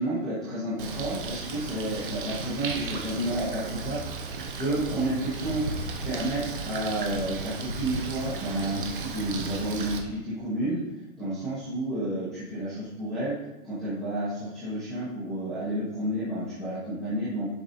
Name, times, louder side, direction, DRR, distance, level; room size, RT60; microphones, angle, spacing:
voice 1, 0.0-5.6 6.0-10.8 11.1-13.4 13.6-17.5, right 1 dB, ahead, -14 dB, 0.9 m, -31 dB
Bird, 0.8-10.0, right 4 dB, 40° right, 0.8 m, -35 dB
10.0 x 5.0 x 2.7 m, 0.96 s
hypercardioid pair, 170°, 42 cm